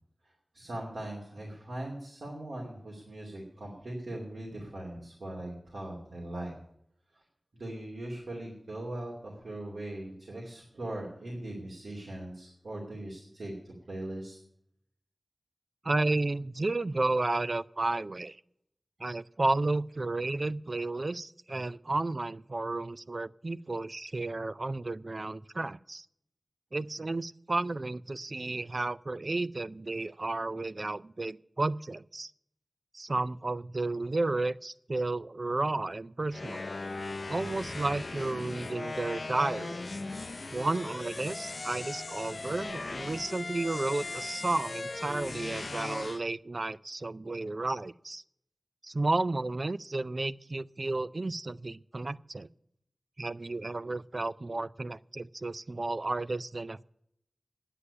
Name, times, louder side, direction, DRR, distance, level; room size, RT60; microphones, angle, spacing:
voice 1, 0.5-6.5 7.1-7.2 7.5-14.4, right 1 dB, 90° right, -2 dB, 2.8 m, -40 dB
voice 2, 15.8-18.4 19.0-26.1 26.7-32.3 32.9-36.6 37.3-39.8 40.5-48.2 48.8-52.5 53.2-56.8, right 2 dB, 55° right, 16 dB, 0.4 m, -32 dB
sound 1, 36.3-46.2, left 3 dB, 65° left, 0.5 m, -38 dB
9.8 x 8.3 x 9.7 m, 0.74 s
wide cardioid pair, 45°, 0 cm